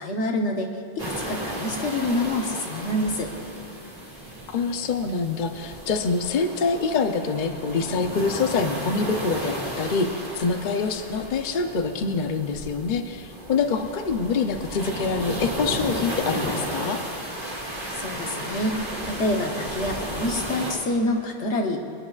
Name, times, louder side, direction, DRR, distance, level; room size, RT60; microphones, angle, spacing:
voice 1, 0.0-3.3 17.9-18.8 19.0-21.8, left 1 dB, 80° left, 2 dB, 1.4 m, -27 dB
sound 1, 1.0-20.8, right 1 dB, 35° right, 2.2 m, -34 dB
voice 2, 4.5-17.0, left 4 dB, 50° left, 6 dB, 0.8 m, -25 dB
25.0 x 10.0 x 2.4 m, 2.8 s
omnidirectional pair, 1.2 m